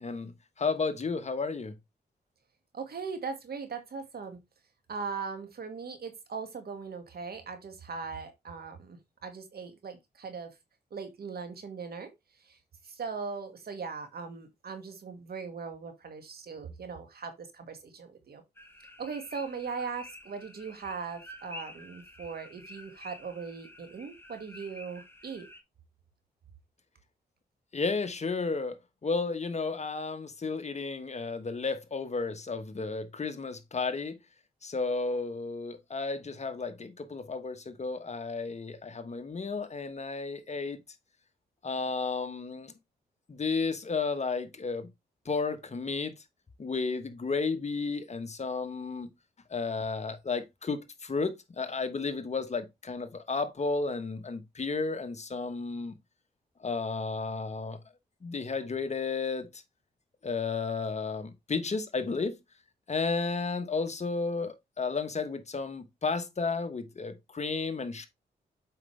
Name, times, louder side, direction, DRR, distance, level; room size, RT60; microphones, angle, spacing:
voice 1, 0.0-1.7 27.7-34.2 34.6-40.8 41.6-42.7 43.3-44.9 45.2-46.1 46.6-49.1 49.5-56.0 56.6-57.8 58.2-59.6 60.2-62.4 62.9-68.1, left 4 dB, 40° left, 1.2 m, -33 dB
voice 2, 2.7-4.4 4.9-10.5 10.9-12.1 12.4-12.6 12.8-18.4 19.0-25.5, right 5 dB, 65° right, 1.9 m, -39 dB
sound 1, 18.6-25.6, left 1 dB, 15° left, 1.5 m, -50 dB
7.4 x 5.2 x 3.3 m
cardioid pair, 65°, 17 cm